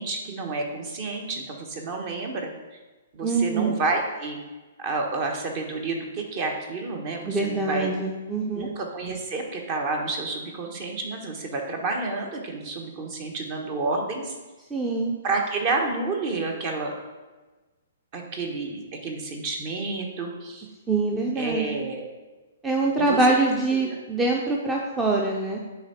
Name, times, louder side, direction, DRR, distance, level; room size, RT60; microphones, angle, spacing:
voice 1, 0.0-2.5 3.1-4.4 4.8-7.9 8.5-14.3 15.2-16.9 18.1-20.7 21.3-22.1 23.0-23.2 23.8-24.0, right 3 dB, 35° right, 3 dB, 1.2 m, -30 dB
voice 2, 3.2-3.7 7.3-8.7 14.7-15.1 20.9-21.8 22.6-25.6, right 3 dB, 10° right, -1 dB, 0.6 m, -24 dB
8.7 x 3.5 x 4.3 m, 1.2 s
figure-of-eight pair, 120°, 0 cm